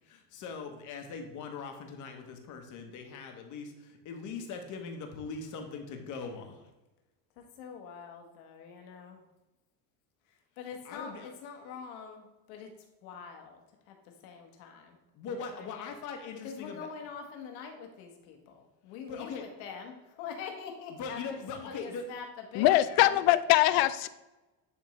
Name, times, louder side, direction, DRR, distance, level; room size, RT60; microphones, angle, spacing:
voice 1, 0.1-6.6 10.8-11.3 15.1-16.8 19.1-19.5 20.9-22.0, left 5 dB, 45° left, 5 dB, 1.1 m, -41 dB
voice 2, 7.4-9.2 10.3-12.7 13.0-14.0 14.2-15.0 15.2-15.9 16.4-23.2, left 6 dB, 80° left, 3 dB, 1.4 m, -44 dB
voice 3, 22.6-24.1, left 15 dB, 60° left, 14 dB, 0.5 m, -22 dB
10.5 x 3.6 x 3.2 m, 1.0 s
cardioid pair, 140°, 42 cm